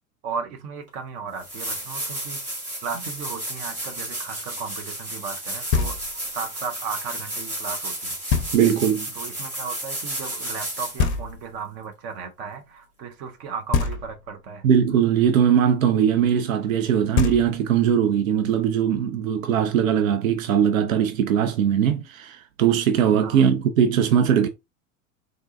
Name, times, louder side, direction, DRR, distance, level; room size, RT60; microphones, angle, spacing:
voice 1, 0.2-2.4 2.8-8.2 9.1-14.7 23.2-23.5, right 6 dB, 20° right, 0.3 m, -35 dB
sound 1, 0.9-1.0 1.4-11.1 13.9-14.0, right 1 dB, 85° right, 1.5 m, -33 dB
Knock, 5.7-6.4 8.3-9.0 11.0-11.8 13.7-14.5 16.8-16.9 17.1-18.0, left 5 dB, 35° left, 0.6 m, -26 dB
voice 2, 8.5-9.1 14.6-24.5, right 8 dB, 70° right, 0.6 m, -20 dB
3.7 x 2.2 x 2.4 m
figure-of-eight pair, 85°, 42 cm